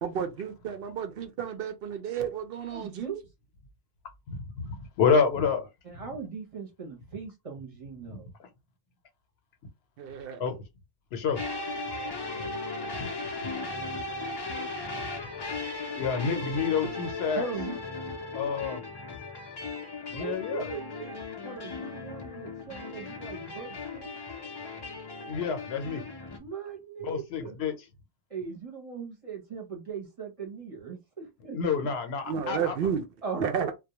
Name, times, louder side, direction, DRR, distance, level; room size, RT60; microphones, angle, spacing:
voice 1, 0.0-3.1 10.0-10.4 16.3-16.4 32.3-33.0 33.4-33.7, right 8 dB, 70° right, 0.7 m, -32 dB
voice 2, 2.7-3.2 5.8-8.4 17.4-17.8 20.1-21.1 21.4-24.1 26.4-27.5 28.3-31.6 33.2-33.7, right 6 dB, 35° right, 0.8 m, -39 dB
voice 3, 4.3-5.7 8.1-8.2 10.4-10.5 11.1-11.4 12.4-12.5 13.0-13.1 13.4-13.5 15.9-17.4 18.3-18.8 20.1-20.7 25.2-26.0 27.1-27.7 31.5-32.8, left 6 dB, 80° left, 0.9 m, -28 dB
sound 1, 11.4-26.4, left 3 dB, 40° left, 0.4 m, -37 dB
2.2 x 2.1 x 2.8 m
omnidirectional pair, 1.0 m